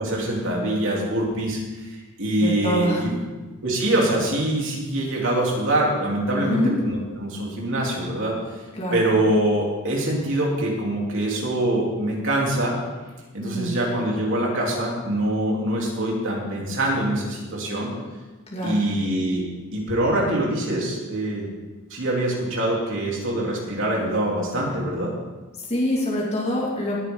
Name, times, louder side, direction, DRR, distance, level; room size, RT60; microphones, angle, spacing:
voice 1, 0.0-3.1 3.6-8.4 8.9-12.7 13.3-17.9 18.6-21.5 21.9-25.1, right 1 dB, 60° right, -3 dB, 3.6 m, -24 dB
voice 2, 2.4-3.2 6.3-6.7 8.7-9.0 13.4-13.8 18.5-18.8 25.6-27.0, equal, 30° left, -5 dB, 2.7 m, -25 dB
19.0 x 9.6 x 4.0 m, 1.2 s
head